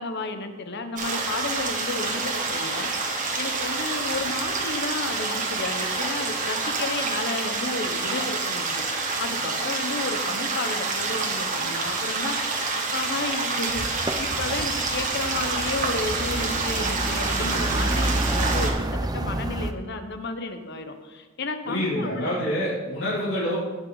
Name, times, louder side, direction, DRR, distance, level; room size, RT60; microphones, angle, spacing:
voice 1, 0.0-12.5 12.9-18.8 19.0-22.6 23.0-23.3, left 3 dB, 60° left, 8 dB, 1.0 m, -32 dB
sound 1, 1.0-18.7, right 3 dB, 40° right, 1.5 m, -28 dB
sound 2, 13.7-19.7, right 1 dB, 20° right, 0.5 m, -29 dB
voice 2, 21.6-23.6, equal, 75° left, -10 dB, 3.1 m, -27 dB
18.0 x 6.0 x 4.0 m, 1.3 s
head